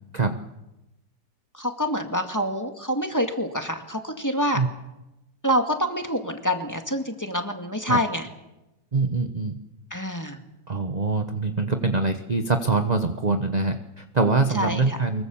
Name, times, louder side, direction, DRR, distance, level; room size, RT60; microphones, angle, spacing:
voice 1, 1.5-4.6 5.4-8.3 9.9-10.4 14.5-15.0, equal, 10° left, 4 dB, 2.0 m, -26 dB
voice 2, 8.9-9.5 10.7-15.2, right 3 dB, 30° right, 6 dB, 1.1 m, -24 dB
24.5 x 22.5 x 7.2 m, 0.97 s
omnidirectional pair, 1.8 m